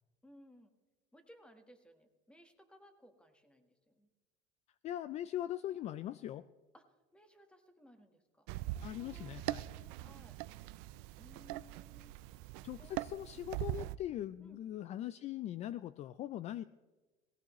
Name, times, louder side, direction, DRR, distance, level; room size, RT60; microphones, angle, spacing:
voice 1, 0.2-0.7 1.1-4.1 6.7-8.5 8.9-9.4 10.0-10.4 11.2-12.1 12.8-13.1 14.4-14.6, equal, 5° left, 7 dB, 1.4 m, -61 dB
voice 2, 4.8-6.5 8.8-9.7 12.6-16.6, left 12 dB, 40° left, 15 dB, 0.3 m, -41 dB
sound 1, 8.5-14.0, right 16 dB, 80° right, 0.5 m, -42 dB
18.0 x 15.5 x 3.1 m, 1.2 s
cardioid pair, 130°, 17 cm